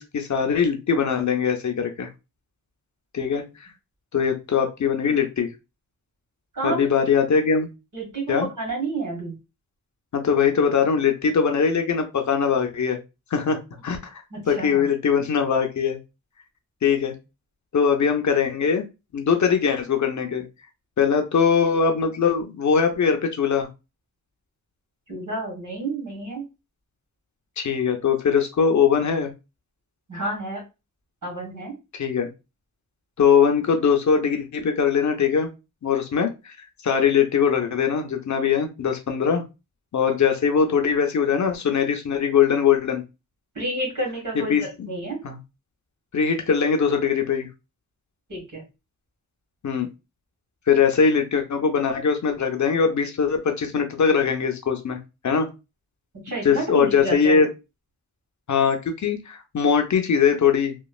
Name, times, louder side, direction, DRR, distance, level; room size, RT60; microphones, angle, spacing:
voice 1, 0.0-2.1 3.1-3.7 4.1-5.5 6.6-7.7 8.3-8.5 10.1-13.0 13.3-14.0 14.5-16.0 16.8-17.2 17.7-18.8 19.1-20.4 21.0-23.7 27.6-29.3 31.9-32.3 33.2-35.5 35.8-36.6 36.8-39.4 39.9-43.0 44.3-44.9 45.2-45.4 46.1-47.5 49.6-49.9 50.7-55.0 55.2-55.5 56.4-57.5 58.5-60.7, left 6 dB, 60° left, 4 dB, 0.6 m, -21 dB
voice 2, 6.5-6.9 7.9-9.4 14.3-14.9 25.1-26.4 30.1-30.6 31.2-31.7 43.6-45.2 48.3-48.6 56.2-57.5, right 2 dB, 70° right, -1 dB, 1.8 m, -30 dB
3.1 x 2.2 x 2.3 m, 0.26 s
wide cardioid pair, 115°, 32 cm